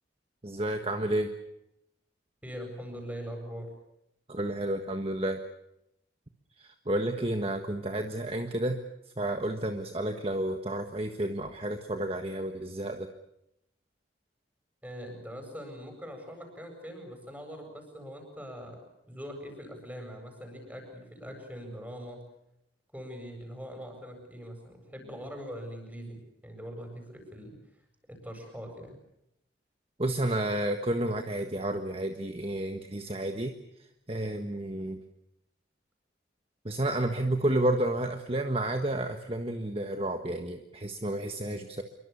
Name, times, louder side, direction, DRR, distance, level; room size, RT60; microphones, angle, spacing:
voice 1, 0.4-1.3 4.3-5.4 6.6-8.8 9.2-13.1 30.0-33.5 34.1-35.0 36.6-41.8, right 1 dB, 30° right, 6 dB, 1.5 m, -31 dB
voice 2, 2.4-3.7 14.8-18.8 19.1-22.2 22.9-27.6 28.1-29.0, equal, 10° right, 4 dB, 8.0 m, -42 dB
27.5 x 24.0 x 7.1 m, 0.83 s
head